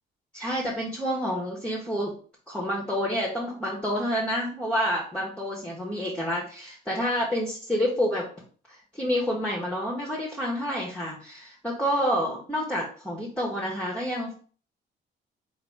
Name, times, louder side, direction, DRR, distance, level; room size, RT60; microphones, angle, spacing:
voice 1, 0.3-2.1 2.5-8.2 8.7-14.3, equal, 5° left, -3 dB, 1.3 m, -28 dB
3.9 x 2.7 x 4.8 m, 0.43 s
cardioid pair, 90°, 20 cm